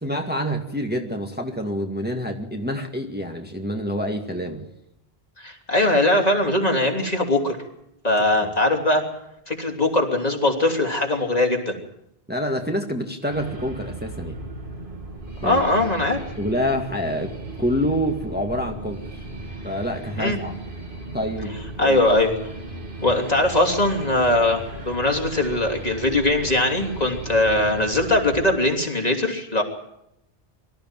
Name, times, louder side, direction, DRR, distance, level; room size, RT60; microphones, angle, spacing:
voice 1, 0.0-4.7 12.3-14.4 15.4-15.6 16.4-19.2 19.6-20.5 21.1-22.0, equal, 10° right, 2 dB, 2.1 m, -27 dB
voice 2, 5.4-7.6 8.0-9.0 9.5-11.8 15.4-16.2 20.2-20.4 21.8-22.3 23.0-29.6, left 1 dB, 40° left, 2 dB, 3.5 m, -21 dB
sound 1, 13.3-28.6, right 2 dB, 55° right, 2.8 m, -36 dB
24.5 x 14.0 x 9.0 m, 0.82 s
omnidirectional pair, 1.0 m